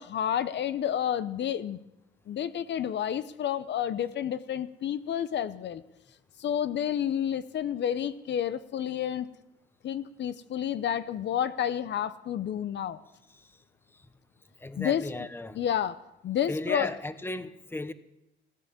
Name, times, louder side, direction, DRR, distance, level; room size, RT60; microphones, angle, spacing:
voice 1, 0.0-1.8 2.3-5.8 6.4-9.3 9.8-13.0 14.8-15.3 15.6-16.0 16.2-16.9, left 9 dB, 65° left, 14 dB, 0.7 m, -30 dB
voice 2, 14.6-15.6 16.5-17.9, left 2 dB, 10° left, 12 dB, 1.0 m, -35 dB
17.0 x 9.7 x 7.4 m, 0.92 s
cardioid pair, 90°, 20 cm